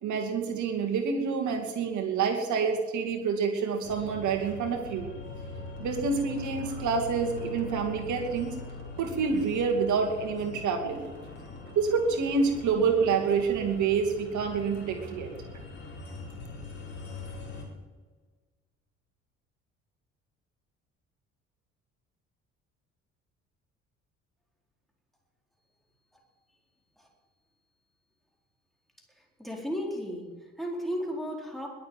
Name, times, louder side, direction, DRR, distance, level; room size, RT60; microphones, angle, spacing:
voice 1, 0.0-5.1 5.8-8.5 9.0-11.0 11.8-15.3, right 5 dB, 50° right, 3 dB, 2.6 m, -27 dB
sound 1, 3.8-17.7, left 3 dB, 30° left, 4.7 m, -42 dB
voice 2, 29.1-31.7, equal, ahead, -1 dB, 4.5 m, -35 dB
21.0 x 7.5 x 7.7 m, 1.4 s
figure-of-eight pair, 50°, 38 cm